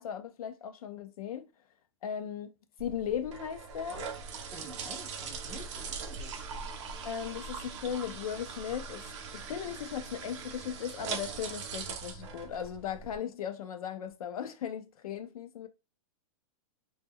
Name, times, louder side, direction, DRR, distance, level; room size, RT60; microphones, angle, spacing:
voice 1, 0.0-1.5 2.0-2.5 2.8-4.1 7.0-9.0 9.3-15.7, left 8 dB, 80° left, 0.5 m, -37 dB
sound 1, 2.8-13.2, right 5 dB, 55° right, 0.5 m, -41 dB
voice 2, 4.5-6.3, right 1 dB, ahead, 0.4 m, -48 dB
2.1 x 2.1 x 3.4 m
hypercardioid pair, 160°, 18 cm